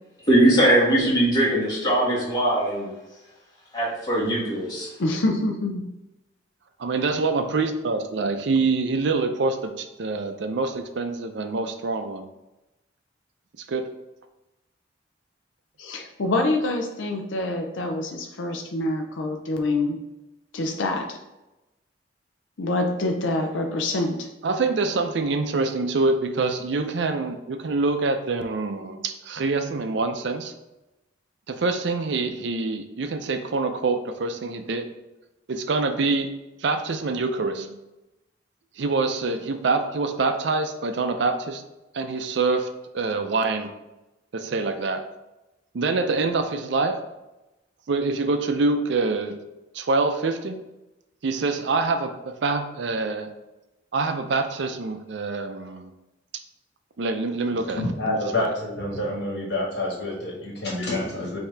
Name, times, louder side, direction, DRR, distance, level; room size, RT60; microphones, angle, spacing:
voice 1, 0.3-2.9 3.7-4.9, right 1 dB, 20° left, -7 dB, 1.6 m, -20 dB
voice 2, 5.0-5.8 15.8-20.0 20.5-21.2 22.6-24.3, left 2 dB, 85° left, 4 dB, 0.5 m, -26 dB
voice 3, 6.8-12.3 13.7-13.9 24.4-30.5 31.5-34.9 35.5-36.3 36.6-37.8 38.8-41.6 41.9-42.7 42.9-43.7 44.3-45.0 45.7-47.0 47.9-49.4 49.7-50.6 51.2-53.3 53.9-55.9 57.0-58.2, right 3 dB, 70° right, 7 dB, 0.5 m, -25 dB
voice 4, 57.6-61.4, left 1 dB, 60° left, -3 dB, 1.5 m, -28 dB
5.6 x 2.8 x 3.3 m, 0.97 s
head